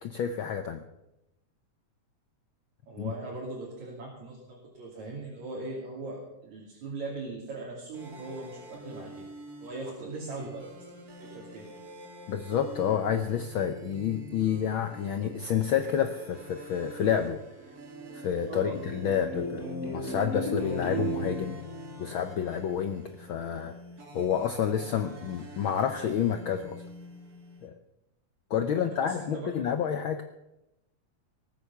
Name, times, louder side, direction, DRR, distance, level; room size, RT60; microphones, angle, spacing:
voice 1, 0.0-0.8 3.0-3.1 12.3-17.4 18.1-19.7 19.9-21.6 22.0-23.7 24.1-26.8 27.6-27.7 28.5-30.2, left 8 dB, 80° left, 8 dB, 1.1 m, -29 dB
voice 2, 2.9-9.3 9.6-10.7 11.2-11.7 18.5-18.7 28.6-29.7, right 2 dB, 75° right, -4 dB, 4.1 m, -40 dB
sound 1, 7.9-27.7, right 1 dB, 35° right, 2.1 m, -48 dB
sound 2, 17.6-23.0, equal, 30° left, 6.8 m, -36 dB
19.0 x 8.8 x 6.9 m, 0.90 s
omnidirectional pair, 3.3 m